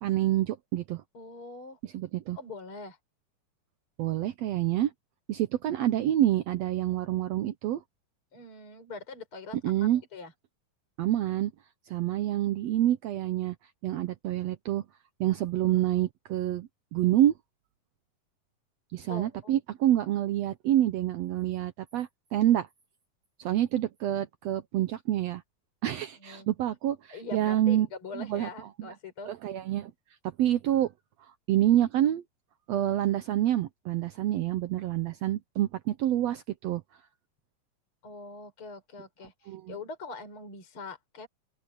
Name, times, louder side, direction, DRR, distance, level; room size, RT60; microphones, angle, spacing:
voice 1, 0.0-1.0 1.9-2.4 4.0-4.9 5.3-7.8 9.6-10.0 11.0-11.5 11.9-13.5 13.8-14.8 15.2-17.3 18.9-22.7 23.4-25.4 25.8-27.9 28.1-28.5 29.3-29.9 30.4-30.9 31.2-32.2 32.7-36.8 39.5-39.7, right 12 dB, 75° right, 1.5 m, -27 dB
voice 2, 1.1-1.8 2.4-3.0 8.3-10.3 19.1-19.5 26.2-26.5 27.1-29.4 38.0-41.3, left 3 dB, 40° left, 5.5 m, -43 dB
open air
omnidirectional pair, 3.8 m